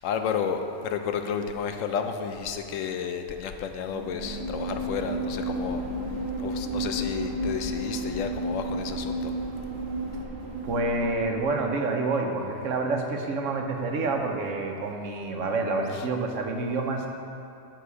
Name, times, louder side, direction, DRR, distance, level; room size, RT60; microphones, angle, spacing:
voice 1, 0.0-5.8 6.4-9.3 15.9-16.1, left 7 dB, 85° left, 6 dB, 1.0 m, -31 dB
sound 1, 3.9-11.7, right 1 dB, 60° right, 1.2 m, -32 dB
voice 2, 10.6-17.1, right 3 dB, 80° right, 3 dB, 1.2 m, -28 dB
9.5 x 3.6 x 6.9 m, 2.6 s
omnidirectional pair, 1.3 m